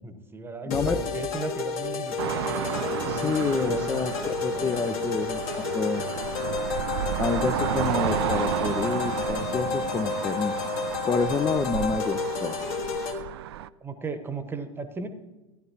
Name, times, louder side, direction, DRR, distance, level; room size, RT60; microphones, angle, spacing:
voice 1, 0.0-4.0 4.5-5.2 13.8-15.1, right 4 dB, 15° right, 9 dB, 1.0 m, -37 dB
sound 1, 0.7-13.1, left 5 dB, 45° left, 1.7 m, -31 dB
voice 2, 0.7-1.0 3.0-6.0 7.2-10.6 11.1-12.6, left 4 dB, 15° left, 8 dB, 0.5 m, -28 dB
sound 2, 2.2-13.7, right 12 dB, 60° right, 0.4 m, -32 dB
15.5 x 11.0 x 2.9 m, 1.1 s
figure-of-eight pair, 85°, 15 cm